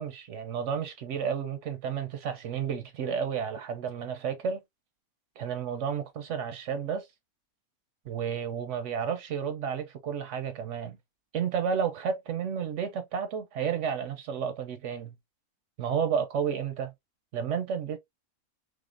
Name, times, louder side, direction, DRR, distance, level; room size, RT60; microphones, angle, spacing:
voice 1, 0.0-4.6 5.4-7.1 8.1-11.0 11.3-15.2 15.8-16.9 17.3-18.0, right 7 dB, 65° right, 0.8 m, -31 dB
3.6 x 3.3 x 2.4 m
omnidirectional pair, 1.6 m